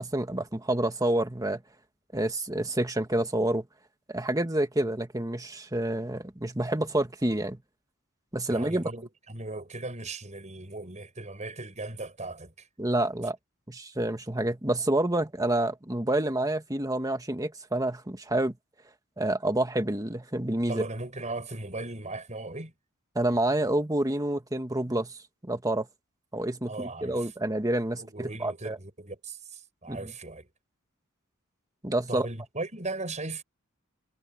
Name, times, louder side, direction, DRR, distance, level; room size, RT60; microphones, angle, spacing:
voice 1, 0.0-1.6 2.1-3.7 4.1-7.6 8.3-8.9 12.8-13.4 13.7-18.6 19.2-20.8 23.2-25.2 25.4-25.9 26.3-28.8 29.9-30.1 31.8-32.3, right 1 dB, 15° right, 1.7 m, -28 dB
voice 2, 8.5-12.7 20.7-22.7 26.7-27.3 28.0-30.5 32.1-33.4, right 2 dB, 35° right, 6.5 m, -37 dB
head